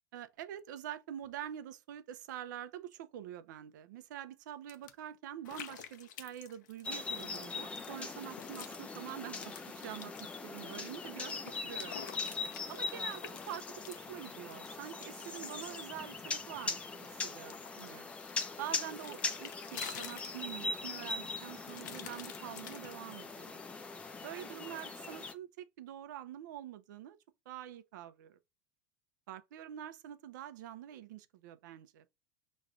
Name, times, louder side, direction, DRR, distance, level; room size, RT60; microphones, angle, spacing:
voice 1, 0.1-10.1 10.4-12.0 12.7-18.1 18.6-23.6 24.2-27.2 27.5-28.4 29.3-32.0, right 11 dB, 85° right, 0.7 m, -46 dB
sound 1, 4.7-4.9 5.4-8.8 9.1-10.9 11.3-16.6 17.0-20.7 21.1-23.1, left 10 dB, 80° left, 0.9 m, -50 dB
sound 2, 6.8-25.3, left 4 dB, 10° left, 0.5 m, -41 dB
6.2 x 3.1 x 2.5 m
supercardioid pair, 165°, 10 cm